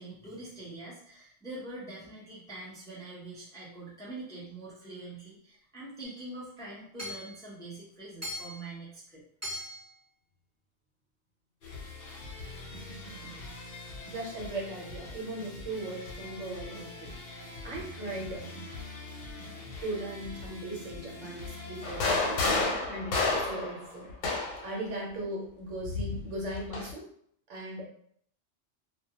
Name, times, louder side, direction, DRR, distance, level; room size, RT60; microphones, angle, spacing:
voice 1, 0.0-9.2, right 2 dB, 5° left, -7 dB, 0.5 m, -44 dB
Hammer / Chink clink, 6.0-6.2 7.0-7.4 8.2-8.7 9.4-9.9, left 1 dB, 15° right, 1.1 m, -39 dB
sound 1, 11.6-22.5, left 2 dB, 55° left, 0.8 m, -43 dB
voice 2, 14.1-17.1 17.6-18.4 19.8-22.4 22.9-24.1 24.6-27.0 27.5-27.9, right 1 dB, 75° right, -2 dB, 1.1 m, -38 dB
sound 2, 21.8-24.7 25.8-26.9, left 3 dB, 90° left, 1.0 m, -30 dB
2.3 x 2.2 x 2.8 m, 0.64 s
omnidirectional pair, 1.3 m